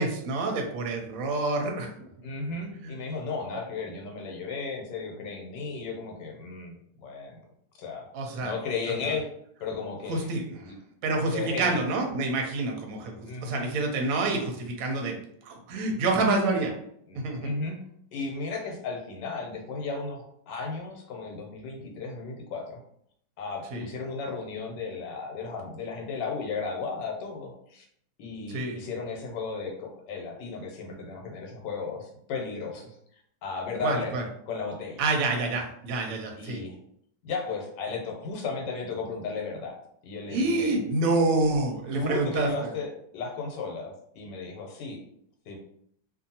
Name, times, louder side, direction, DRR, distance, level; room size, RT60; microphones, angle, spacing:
voice 1, 0.0-1.9 2.8-2.9 3.5-3.6 8.1-8.5 10.1-10.6 11.0-13.1 13.4-15.2 15.5-16.8 17.1-17.4 23.7-23.9 28.5-28.8 33.8-34.2 35.0-36.6 40.3-42.7, right 2 dB, 65° right, 2 dB, 0.9 m, -27 dB
voice 2, 2.2-7.4 7.8-8.1 8.4-9.3 9.6-10.3 10.7-10.8 11.3-11.8 13.2-13.7 17.1-17.8 18.1-22.8 23.4-27.8 28.2-33.0 33.4-35.1 36.4-36.8 37.2-39.8 40.0-40.8 41.9-45.0 45.5-45.6, left 4 dB, 80° left, 1 dB, 1.3 m, -35 dB
2.7 x 2.5 x 2.7 m, 0.69 s
omnidirectional pair, 1.9 m